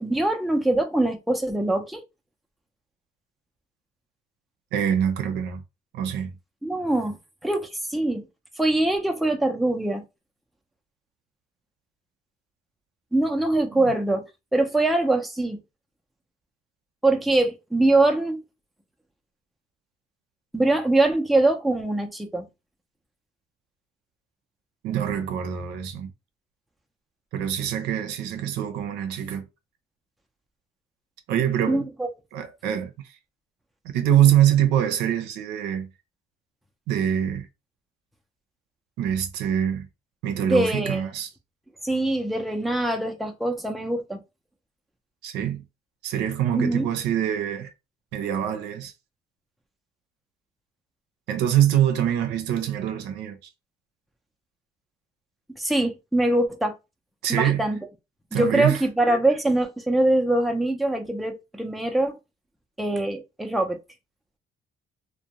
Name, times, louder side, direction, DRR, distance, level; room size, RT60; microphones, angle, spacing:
voice 1, 0.0-2.0 6.6-7.2 7.4-8.3 8.6-10.0 13.1-14.2 14.5-15.6 17.0-18.4 20.5-22.5 31.7-32.1 40.4-41.1 41.8-44.2 46.5-46.9 55.6-56.7 57.3-57.8 58.3-62.2 62.8-63.8, right 2 dB, ahead, 0.5 m, -23 dB
voice 2, 4.7-5.6 5.9-6.3 24.8-26.1 27.3-29.4 31.3-31.8 32.3-32.9 33.9-35.9 36.9-37.5 39.0-39.9 40.2-41.3 45.2-45.6 46.0-47.7 48.1-48.9 51.3-53.4 57.2-57.6 58.3-58.8, right 10 dB, 90° right, 0.6 m, -24 dB
2.5 x 2.2 x 2.9 m
cardioid pair, 110°, 17 cm